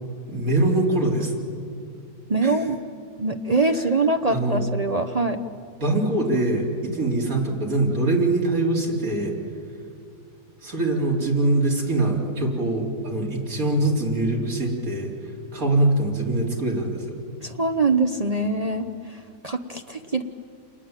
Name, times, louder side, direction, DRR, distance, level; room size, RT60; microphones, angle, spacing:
voice 1, 0.3-1.3 2.4-2.6 3.7-3.9 4.3-4.6 5.8-9.4 10.6-17.2, right 2 dB, 55° right, -2 dB, 4.5 m, -23 dB
voice 2, 2.3-2.8 3.2-5.4 17.4-18.9 19.4-20.2, right 3 dB, 35° right, 6 dB, 0.7 m, -23 dB
28.5 x 21.0 x 9.1 m, 2.5 s
omnidirectional pair, 1.8 m